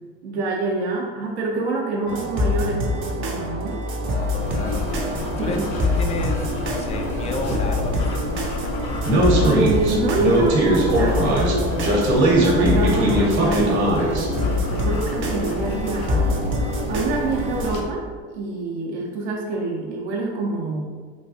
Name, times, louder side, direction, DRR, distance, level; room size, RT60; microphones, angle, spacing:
voice 1, 0.2-3.8 5.4-5.7 9.4-16.4 16.9-18.0 18.3-20.8, right 3 dB, 80° right, -1 dB, 0.7 m, -26 dB
sound 1, 2.1-17.8, left 1 dB, 35° right, 0.6 m, -26 dB
voice 2, 4.0-8.2, left 2 dB, 20° left, 3 dB, 0.3 m, -31 dB
sound 2, 4.4-17.8, left 2 dB, 70° left, 0.6 m, -29 dB
Speech, 9.0-14.2, right 1 dB, 60° right, 1.0 m, -19 dB
3.1 x 2.3 x 2.8 m, 1.5 s
hypercardioid pair, 80°, 33 cm